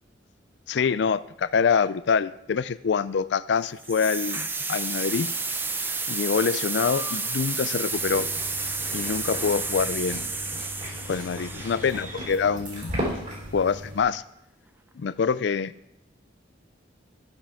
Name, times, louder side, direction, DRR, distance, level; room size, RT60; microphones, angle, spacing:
voice 1, 0.7-5.3 6.1-8.3 8.9-10.3 11.1-13.0 13.5-14.2 15.0-15.7, left 6 dB, 60° left, 17 dB, 0.4 m, -25 dB
sound 1, 3.8-12.7, right 3 dB, 10° right, 0.4 m, -31 dB
sound 2, 7.9-14.0, equal, 40° right, 3.7 m, -36 dB
14.5 x 7.2 x 3.6 m, 0.82 s
head